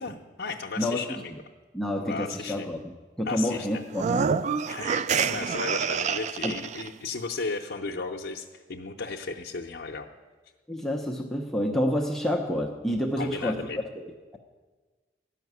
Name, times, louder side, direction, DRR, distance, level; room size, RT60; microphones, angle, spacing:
voice 1, 0.0-1.3 2.0-2.7 3.3-3.8 4.7-5.0 5.3-10.1 13.2-13.8, left 4 dB, 70° left, 0 dB, 0.7 m, -35 dB
voice 2, 1.7-2.9 3.2-4.3 6.4-6.5 10.7-13.6 14.0-14.4, equal, ahead, 0 dB, 0.7 m, -28 dB
sound 1, 3.9-6.9, right 6 dB, 40° right, 0.3 m, -27 dB
13.0 x 5.8 x 9.3 m, 1.4 s
head